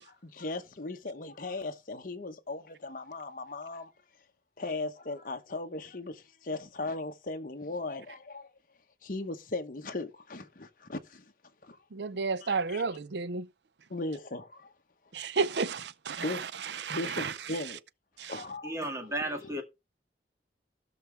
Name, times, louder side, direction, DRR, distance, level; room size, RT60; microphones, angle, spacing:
voice 1, 0.0-3.9 4.6-8.5 9.0-11.2 11.6-11.8 12.1-12.8 13.9-14.7 16.2-16.4 16.9-17.8 18.2-19.1 19.4-19.6, left 2 dB, 50° left, 1.0 m, -38 dB
voice 2, 11.9-13.5 15.1-17.3 18.2-18.4, right 4 dB, 75° right, 0.6 m, -32 dB
voice 3, 18.6-19.6, right 1 dB, 15° right, 2.0 m, -34 dB
16.5 x 6.0 x 3.3 m
head